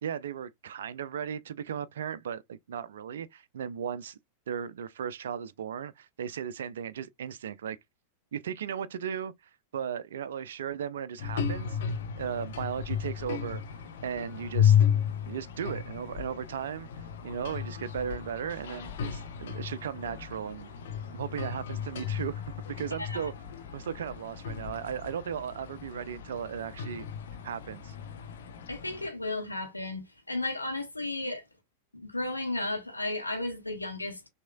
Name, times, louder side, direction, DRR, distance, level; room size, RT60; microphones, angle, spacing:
voice 1, 0.0-4.2 4.5-7.8 8.3-9.3 9.7-13.6 14.0-14.8 15.3-16.9 17.2-20.7 21.1-22.4 22.7-23.3 23.7-27.0 27.4-27.9, right 8 dB, 60° right, 0.4 m, -36 dB
sound 1, 11.2-29.1, left 8 dB, 60° left, 0.9 m, -33 dB
voice 2, 23.0-23.3 28.7-31.4 31.9-34.3, left 2 dB, 85° left, 1.2 m, -34 dB
6.0 x 2.8 x 2.3 m
figure-of-eight pair, 90°, 0 cm